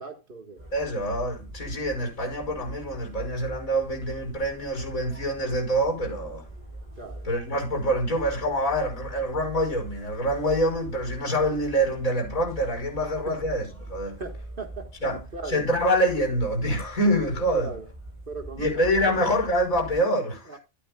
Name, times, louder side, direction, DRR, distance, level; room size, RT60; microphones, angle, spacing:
voice 1, 0.0-0.7 7.0-7.3 13.3-13.4 14.2-15.6 17.5-17.8 18.3-18.7 20.5-20.6, right 3 dB, 40° right, 1.7 m, -38 dB
sound 1, 0.6-20.0, right 1 dB, 25° right, 7.9 m, -42 dB
voice 2, 0.7-6.5 7.2-14.2 15.0-15.2 15.5-17.7 18.5-20.6, equal, 85° left, 6.2 m, -26 dB
13.0 x 11.5 x 2.3 m
omnidirectional pair, 1.4 m